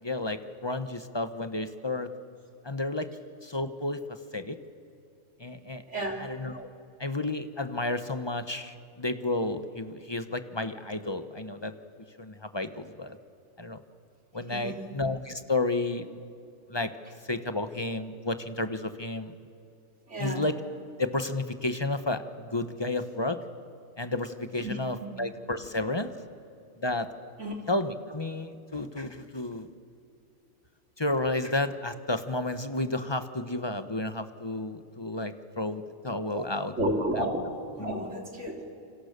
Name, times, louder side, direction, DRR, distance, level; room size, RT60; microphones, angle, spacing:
voice 1, 0.0-2.1 2.6-3.1 3.4-4.6 5.4-5.8 6.2-6.7 7.0-11.7 12.2-13.2 13.6-13.8 14.3-16.1 16.7-16.9 17.2-19.3 20.2-20.6 21.0-23.4 24.0-26.1 26.8-27.1 27.7-29.7 31.0-36.7 37.2-37.3 37.8-38.1, left 2 dB, 20° left, 10 dB, 1.0 m, -31 dB
voice 2, 5.9-6.2 14.5-14.9 20.1-20.4 24.6-24.8 27.4-27.6 36.3-36.5 36.8-37.4 37.8-38.7, right 1 dB, 55° right, 2 dB, 3.6 m, -31 dB
29.0 x 26.0 x 6.7 m, 2.6 s
omnidirectional pair, 1.4 m